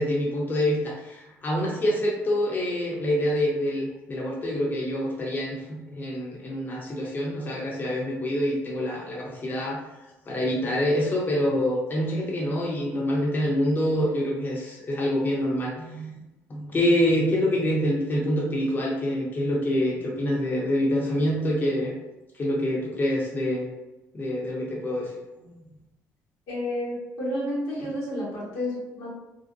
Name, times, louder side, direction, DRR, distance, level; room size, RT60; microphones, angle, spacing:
voice 1, 0.0-9.8 10.3-16.1 16.5-21.9 22.3-23.7 24.1-25.1 25.4-25.5, equal, 30° left, -3 dB, 0.6 m, -26 dB
voice 2, 26.5-29.1, left 1 dB, 85° left, -8 dB, 1.2 m, -30 dB
2.5 x 2.1 x 2.5 m, 1.0 s
supercardioid pair, 80°, 7 cm